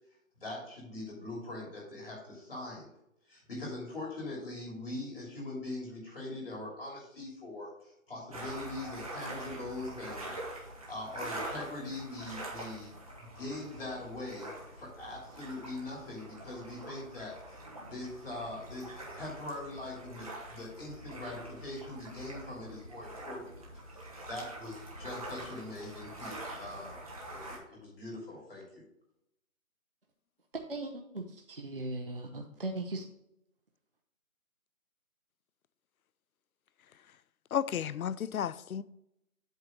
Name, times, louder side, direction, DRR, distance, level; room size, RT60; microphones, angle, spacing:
voice 1, 0.4-2.9 3.3-23.4 23.9-28.8, left 2 dB, 40° left, 3.0 m, -42 dB
sound 1, 8.3-27.6, right 1 dB, 25° right, 1.2 m, -45 dB
voice 2, 30.7-33.1, right 2 dB, 40° right, 0.6 m, -38 dB
voice 3, 37.5-38.8, left 9 dB, 85° left, 0.5 m, -33 dB
8.0 x 3.9 x 6.2 m
figure-of-eight pair, 175°, 42 cm